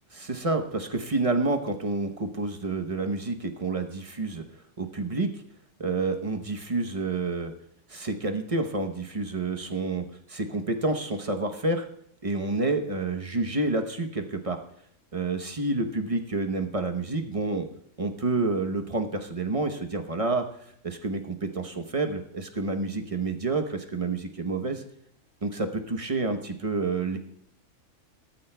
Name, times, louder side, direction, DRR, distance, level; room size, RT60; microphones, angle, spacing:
voice 1, 0.1-4.4 4.8-5.3 5.8-7.5 7.9-11.9 12.2-14.6 15.1-17.7 18.0-20.4 20.8-24.8 25.4-27.2, right 3 dB, 30° right, 5 dB, 0.8 m, -29 dB
18.5 x 13.0 x 2.2 m, 0.70 s
omnidirectional pair, 1.4 m